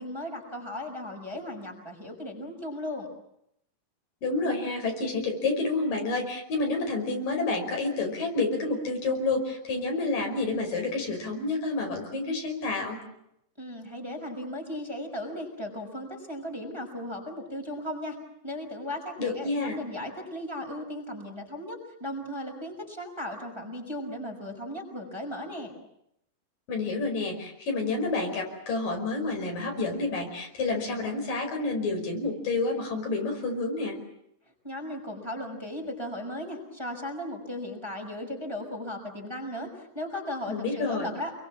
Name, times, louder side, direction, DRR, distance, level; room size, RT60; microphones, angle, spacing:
voice 1, 0.0-3.1 13.6-18.2 18.4-25.7 34.6-41.3, left 1 dB, 5° right, 1 dB, 5.6 m, -36 dB
voice 2, 4.2-13.0 19.2-19.8 26.7-34.0 40.5-41.1, left 3 dB, 70° left, 2 dB, 7.0 m, -29 dB
28.5 x 23.5 x 7.5 m, 0.78 s
omnidirectional pair, 4.0 m